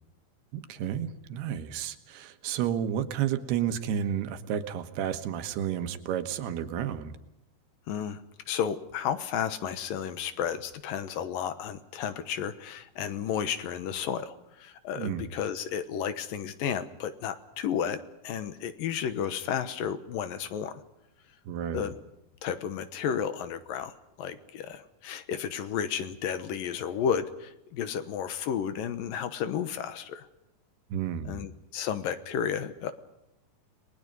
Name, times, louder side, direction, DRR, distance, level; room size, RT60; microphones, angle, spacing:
voice 1, 0.5-7.2 15.0-15.3 21.5-21.9 30.9-31.4, right 9 dB, 80° right, 9 dB, 3.3 m, -31 dB
voice 2, 7.9-8.2 8.5-20.8 21.7-21.9 22.4-30.3 31.2-32.9, left 8 dB, 70° left, 11 dB, 2.6 m, -32 dB
30.0 x 20.5 x 5.4 m, 0.86 s
omnidirectional pair, 4.6 m